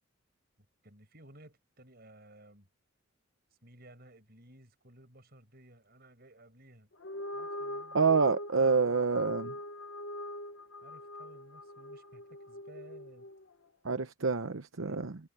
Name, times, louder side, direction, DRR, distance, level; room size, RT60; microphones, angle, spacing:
voice 1, 0.8-2.7 3.6-6.9 7.3-8.2 10.8-13.3 14.8-15.2, right 1 dB, 50° right, 6.4 m, -57 dB
sound 1, 6.9-13.5, left 1 dB, 65° left, 1.3 m, -43 dB
voice 2, 7.9-9.5 13.8-15.1, right 4 dB, 70° right, 0.9 m, -27 dB
head